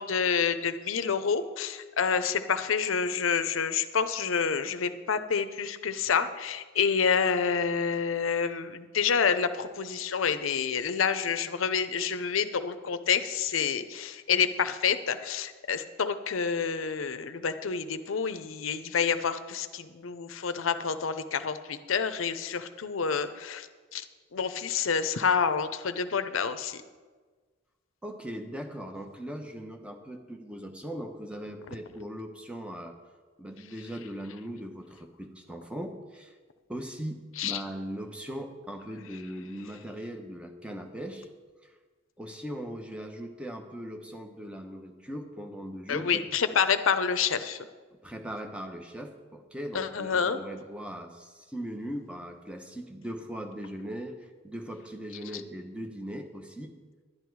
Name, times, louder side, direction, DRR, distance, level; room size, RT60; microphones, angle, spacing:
voice 1, 0.0-24.0 24.3-26.8 37.4-37.6 45.9-47.6 49.7-50.4, left 6 dB, 85° left, 10 dB, 0.6 m, -28 dB
voice 2, 28.0-33.0 33.4-36.3 36.7-41.3 41.6-41.7 42.2-46.2 48.0-56.7, equal, 5° right, 5 dB, 0.9 m, -39 dB
11.0 x 10.0 x 4.7 m, 1.4 s
head